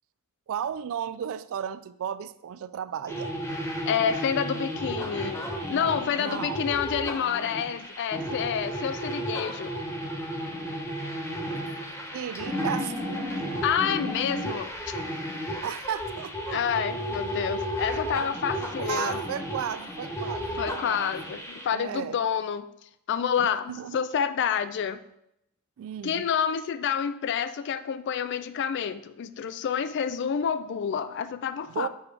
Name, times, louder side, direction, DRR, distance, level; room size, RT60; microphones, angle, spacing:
voice 1, 0.5-3.4 6.1-6.8 12.1-13.6 15.6-16.6 18.5-22.2 23.4-24.0 25.8-26.2 31.7-31.9, right 8 dB, 65° right, 14 dB, 0.3 m, -35 dB
sound 1, 3.1-21.6, equal, 15° left, 1.1 m, -33 dB
voice 2, 3.9-9.7 13.6-14.7 16.5-19.2 20.6-22.7 23.1-25.0 26.0-31.9, left 7 dB, 55° left, 13 dB, 0.3 m, -28 dB
7.0 x 3.2 x 4.8 m, 0.81 s
head